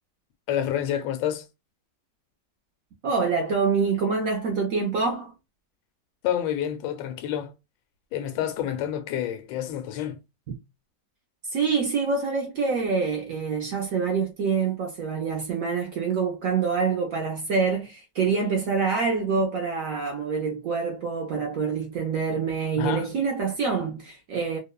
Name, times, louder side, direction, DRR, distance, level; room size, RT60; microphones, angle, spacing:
voice 1, 0.5-1.5 6.2-7.5 8.1-10.2 22.8-23.1, left 10 dB, 90° left, 1.3 m, -28 dB
voice 2, 3.0-5.3 10.5-10.6 11.5-24.6, right 5 dB, 70° right, 0.8 m, -26 dB
3.0 x 2.0 x 2.2 m
omnidirectional pair, 1.9 m